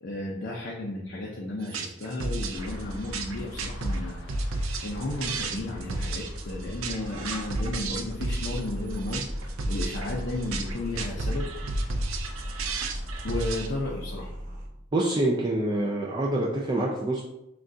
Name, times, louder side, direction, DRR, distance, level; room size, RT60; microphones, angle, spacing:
voice 1, 0.0-4.2 4.8-11.5 13.2-14.3, left 2 dB, 55° left, -3 dB, 0.6 m, -33 dB
sound 1, 1.6-13.7, right 2 dB, 85° right, 0.5 m, -32 dB
sound 2, 2.5-13.3, left 1 dB, 75° left, 1.1 m, -40 dB
sound 3, 8.2-14.7, equal, 40° right, 1.2 m, -38 dB
voice 2, 14.9-17.2, right 1 dB, 20° right, -2 dB, 0.3 m, -26 dB
6.2 x 2.3 x 2.6 m, 0.88 s
head